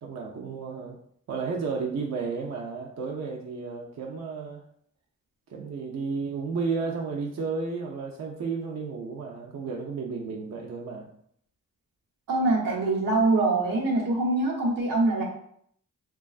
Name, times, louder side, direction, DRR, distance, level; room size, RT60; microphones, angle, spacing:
voice 1, 0.0-1.0 1.3-4.6 5.5-11.1, right 4 dB, 55° right, -1 dB, 0.5 m, -32 dB
voice 2, 12.3-15.2, right 2 dB, 85° right, -3 dB, 0.9 m, -24 dB
3.0 x 2.3 x 2.3 m, 0.66 s
cardioid pair, 60°, 32 cm